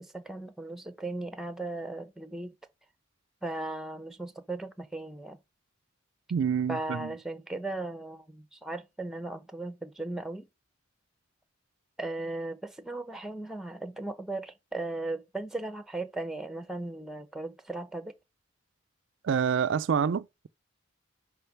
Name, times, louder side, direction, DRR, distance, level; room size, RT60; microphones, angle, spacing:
voice 1, 0.0-2.5 3.4-5.4 6.7-10.5 12.0-18.1, right 2 dB, ahead, 0.7 m, -37 dB
voice 2, 6.3-7.1 19.2-20.5, right 7 dB, 65° right, 0.3 m, -27 dB
6.5 x 5.1 x 6.0 m
head